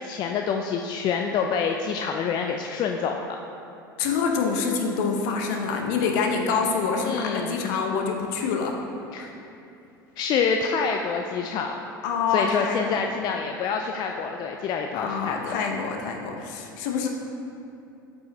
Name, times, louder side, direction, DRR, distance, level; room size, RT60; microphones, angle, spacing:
voice 1, 0.0-3.4 7.0-7.7 9.1-9.3 10.2-11.8 12.3-15.6, left 6 dB, 40° left, 3 dB, 0.3 m, -27 dB
voice 2, 4.0-8.8 9.2-9.3 12.0-13.1 14.9-17.1, left 5 dB, 60° left, 2 dB, 0.7 m, -26 dB
8.0 x 5.3 x 2.2 m, 2.7 s
figure-of-eight pair, 75°, 11 cm